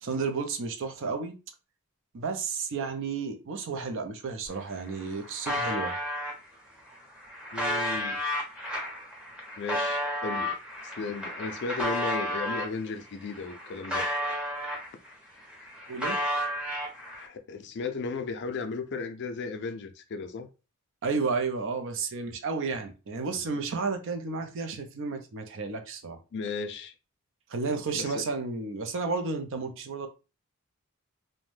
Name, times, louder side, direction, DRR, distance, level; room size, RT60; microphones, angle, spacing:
voice 1, 0.0-1.3 2.1-6.0 15.9-16.2 21.0-26.2 27.5-30.1, right 4 dB, 60° right, 0.5 m, -32 dB
sound 1, 4.4-4.5 4.8-6.3 6.9-12.7 13.2-15.1 15.4-17.3, equal, 5° right, 0.7 m, -32 dB
voice 2, 7.5-8.2 9.6-10.6 10.8-14.1 17.2-20.5 26.3-26.9 27.9-28.2, left 4 dB, 50° left, 0.4 m, -35 dB
2.5 x 2.1 x 3.2 m
head